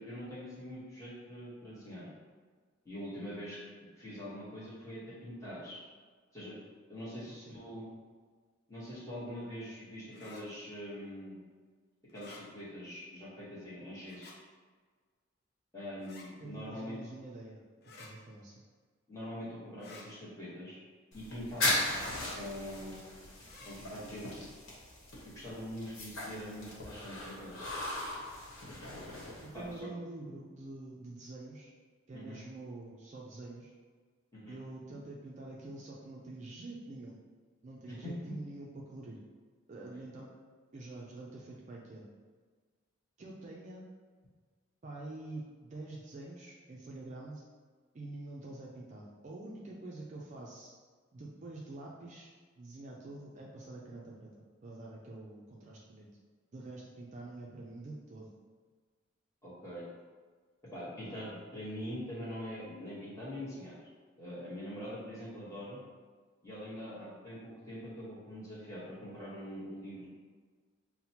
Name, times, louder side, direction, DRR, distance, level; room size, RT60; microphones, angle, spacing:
voice 1, 0.0-2.1 2.8-3.6 4.0-5.8 6.3-6.6 6.9-7.9 8.7-11.5 12.1-14.3 15.7-17.0 19.1-20.8 21.1-21.8 22.4-23.1 23.6-24.5 25.2-27.7 29.5-29.9 32.1-32.4 34.3-34.6 37.9-38.3 59.4-59.9 60.7-63.8 64.2-65.8 66.4-70.1, equal, 15° left, -8 dB, 1.1 m, -43 dB
sound 1, 10.1-10.4 12.1-12.4 14.0-14.4 16.0-16.3 17.8-18.1 19.8-20.1 21.6-21.9 23.4-23.7, left 3 dB, 50° left, 0.6 m, -52 dB
voice 2, 16.4-18.6 29.5-31.7 32.1-33.7 34.5-37.1 37.6-39.2 39.7-40.3 40.7-42.0 43.2-43.9 44.8-47.4 47.9-50.7 51.1-52.3 52.6-54.3 54.6-56.1 56.5-58.3, right 2 dB, 35° right, -3 dB, 0.4 m, -46 dB
sound 2, 21.1-29.8, left 1 dB, 65° left, 1.0 m, -38 dB
5.8 x 2.1 x 2.8 m, 1.5 s
head